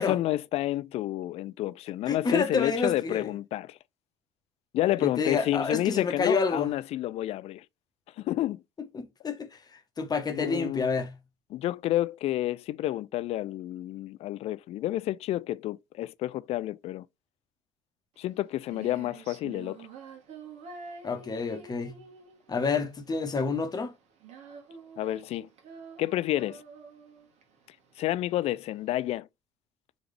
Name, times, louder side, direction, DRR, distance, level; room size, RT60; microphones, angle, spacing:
voice 1, 0.0-3.8 4.7-7.6 8.2-8.6 10.3-10.9 11.5-17.0 18.2-19.9 25.0-25.5 26.0-26.6 28.0-29.3, left 14 dB, 45° left, 0.4 m, -30 dB
voice 2, 2.1-3.3 5.0-6.7 8.9-9.5 10.0-11.2 21.0-22.0 22.5-23.9, left 4 dB, 30° left, 1.1 m, -28 dB
Female singing, 18.2-29.1, right 5 dB, 50° right, 1.6 m, -48 dB
4.8 x 3.1 x 3.4 m
figure-of-eight pair, 55°, 14 cm